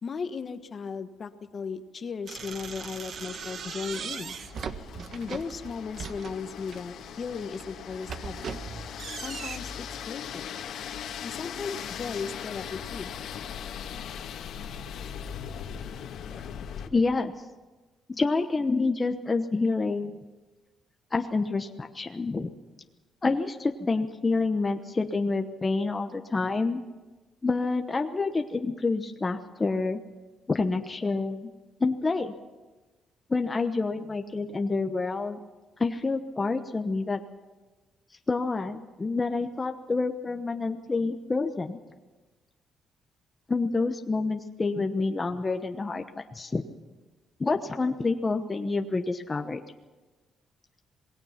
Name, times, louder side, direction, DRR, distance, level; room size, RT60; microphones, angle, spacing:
voice 1, 0.0-4.3 5.1-8.5 9.2-10.6 11.2-13.1, left 5 dB, 40° left, 9 dB, 1.3 m, -36 dB
sound 1, 2.3-16.9, left 8 dB, 80° left, 1.9 m, -40 dB
sound 2, 2.3-6.9 7.4-9.6, right 6 dB, 55° right, 1.3 m, -39 dB
voice 2, 16.9-17.3 18.1-20.2 21.1-22.5 23.2-26.8 27.4-30.0 30.5-31.5 31.8-32.3 33.3-35.4 35.8-37.2 38.3-41.8 43.5-46.6 47.4-49.6, left 3 dB, 25° left, 5 dB, 1.0 m, -28 dB
27.0 x 19.5 x 5.9 m, 1.2 s
cardioid pair, 115°, 0 cm